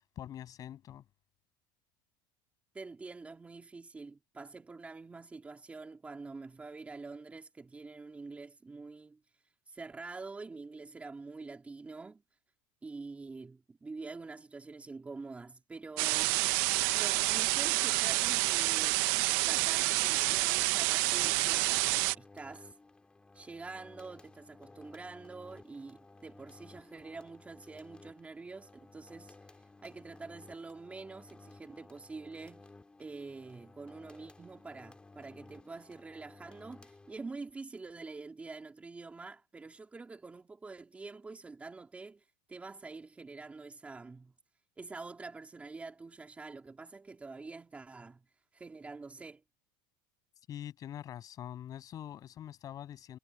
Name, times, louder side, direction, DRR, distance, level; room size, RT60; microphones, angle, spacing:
voice 1, 0.2-1.0 50.5-53.2, left 11 dB, 35° left, 7.5 m, -44 dB
voice 2, 2.7-9.2 9.7-12.2 12.8-16.4 16.9-19.1 19.4-22.7 23.3-29.3 29.8-32.7 33.0-44.3 44.8-48.2 48.5-49.4, right 3 dB, 10° right, 3.2 m, -46 dB
sound 1, 16.0-22.1, right 22 dB, 65° right, 1.0 m, -28 dB
sound 2, 21.1-37.5, left 3 dB, 10° left, 2.5 m, -56 dB
supercardioid pair, 145°, 11 cm